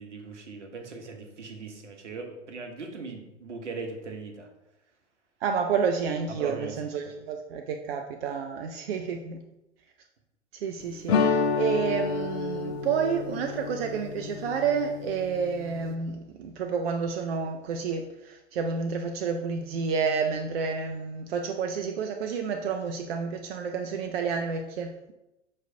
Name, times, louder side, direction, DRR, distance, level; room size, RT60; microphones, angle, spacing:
voice 1, 0.0-4.5 6.4-6.7 7.0-7.1, right 3 dB, 75° right, 4 dB, 0.9 m, -39 dB
voice 2, 5.4-9.4 10.6-25.1, right 6 dB, 55° right, 4 dB, 0.5 m, -30 dB
sound 1, 11.1-15.9, left 4 dB, 60° left, 0.5 m, -29 dB
6.1 x 3.2 x 2.6 m, 0.91 s
figure-of-eight pair, 95°, 36 cm